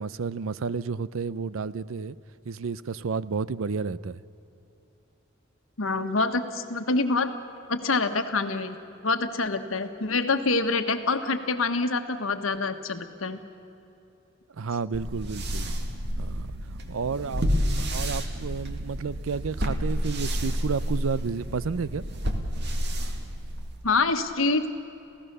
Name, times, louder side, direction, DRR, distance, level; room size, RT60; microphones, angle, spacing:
voice 1, 0.0-2.2 2.4-4.2 14.5-15.7 16.2-16.5 16.9-22.0, right 5 dB, 80° right, 18 dB, 0.5 m, -31 dB
voice 2, 5.8-7.3 7.7-8.8 9.0-13.4 23.8-24.7, left 3 dB, 80° left, 8 dB, 1.3 m, -26 dB
sound 1, 14.9-23.9, equal, 60° right, 2.0 m, -30 dB
28.0 x 16.0 x 6.7 m, 2.9 s
head